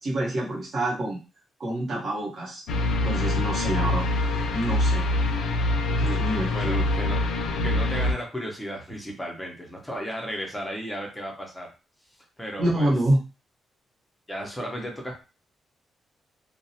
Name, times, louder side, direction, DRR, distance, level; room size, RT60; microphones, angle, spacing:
voice 1, 0.0-1.2 1.6-2.6 3.0-4.1 4.5-5.1 5.9-6.9 12.6-13.2, right 1 dB, 40° right, -4 dB, 0.9 m, -27 dB
sound 1, 2.7-8.1, left 2 dB, 80° left, 0.4 m, -24 dB
voice 2, 6.5-7.2 7.6-11.7 12.4-12.9 14.3-15.2, equal, 5° left, 0 dB, 0.6 m, -34 dB
2.4 x 2.0 x 2.6 m, 0.31 s
wide cardioid pair, 175°, 0 cm